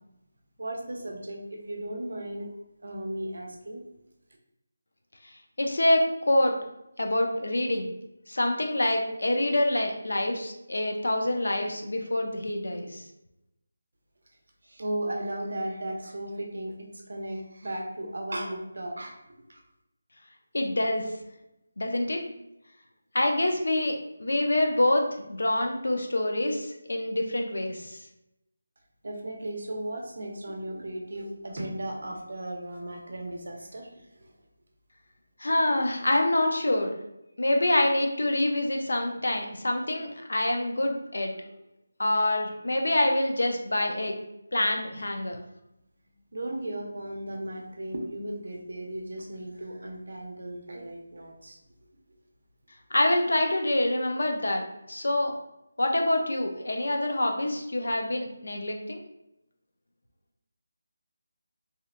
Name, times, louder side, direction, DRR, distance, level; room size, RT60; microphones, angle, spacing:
voice 1, 0.6-2.5 2.8-3.8 14.6-19.6 29.0-34.3 46.3-51.6, right 1 dB, 55° right, 1 dB, 0.5 m, -36 dB
voice 2, 5.6-6.6 7.0-7.9 8.3-13.0 20.5-21.0 21.8-22.3 23.1-28.0 35.4-36.9 37.4-41.3 42.0-44.2 44.5-45.4 52.9-55.3 55.8-59.0, left 1 dB, 80° left, 3 dB, 0.5 m, -26 dB
2.7 x 2.1 x 2.4 m, 0.86 s
figure-of-eight pair, 180°, 0 cm